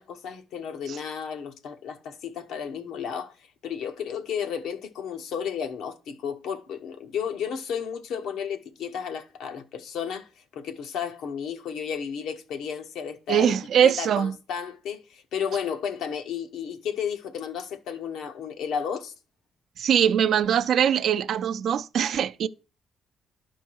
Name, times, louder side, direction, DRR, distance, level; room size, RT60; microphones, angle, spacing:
voice 1, 0.0-13.6 13.8-19.1 22.4-22.5, left 7 dB, 85° left, 1.0 m, -33 dB
voice 2, 13.3-14.3 19.8-22.5, right 9 dB, 70° right, 0.5 m, -22 dB
11.5 x 4.7 x 4.6 m
cardioid pair, 90°, 0 cm